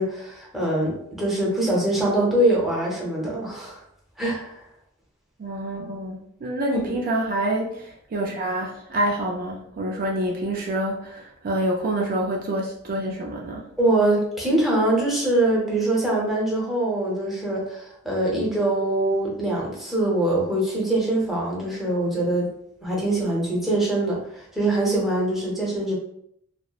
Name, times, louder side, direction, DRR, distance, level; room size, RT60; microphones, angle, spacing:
voice 1, 0.0-3.8 4.2-4.6 6.7-7.0 13.8-22.5 22.8-26.0, right 1 dB, ahead, -5 dB, 0.6 m, -23 dB
voice 2, 5.4-13.7, right 1 dB, 45° right, -1 dB, 0.3 m, -27 dB
2.8 x 2.0 x 2.2 m, 0.72 s
head